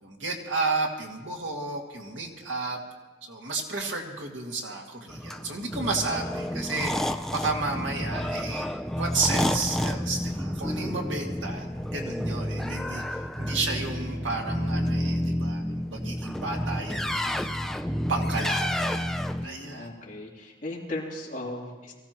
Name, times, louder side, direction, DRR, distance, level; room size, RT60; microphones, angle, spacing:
voice 1, 0.0-2.8 3.2-8.7 9.0-11.7 11.9-17.5 18.1-19.9, right 3 dB, 90° right, 0 dB, 2.2 m, -32 dB
sound 1, 5.1-19.5, equal, ahead, 0.4 m, -30 dB
voice 2, 19.4-21.9, left 1 dB, 40° left, -5 dB, 3.2 m, -37 dB
24.0 x 16.0 x 3.0 m, 1.2 s
head